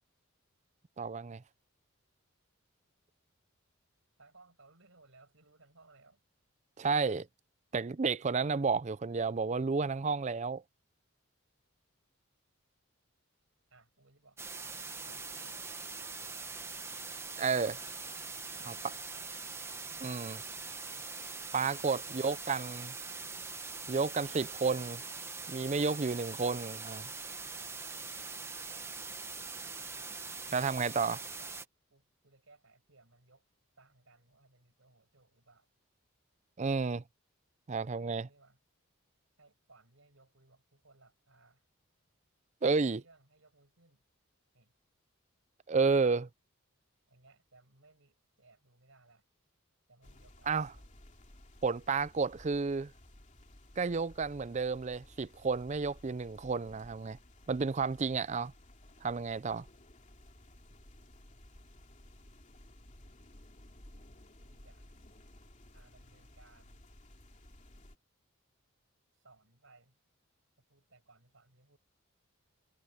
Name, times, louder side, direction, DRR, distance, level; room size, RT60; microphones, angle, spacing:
voice 1, 1.0-1.4 6.8-7.3 7.7-10.6 17.4-17.8 18.7-18.8 20.0-20.4 21.5-22.9 23.9-25.0 25.5-27.1 30.5-31.2 36.6-37.0 37.7-38.3 42.6-43.0 45.7-46.3 50.5-50.7 51.6-52.9 53.8-57.2 57.5-58.5 59.0-59.6, right 4 dB, 30° right, 0.4 m, -31 dB
voice 2, 4.2-6.2 13.7-16.3 18.5-19.3 21.8-22.5 30.6-31.6 31.9-33.5 33.8-35.7 37.8-38.6 39.4-41.6 42.6-44.0 44.5-44.7 47.1-49.2 49.9-50.9 64.4-64.9 65.7-66.8 69.1-70.0 70.7-71.8, right 3 dB, 65° right, 5.8 m, -63 dB
sound 1, 14.4-31.7, right 4 dB, 10° right, 1.0 m, -43 dB
sound 2, 50.0-68.0, left 1 dB, 35° left, 2.8 m, -57 dB
head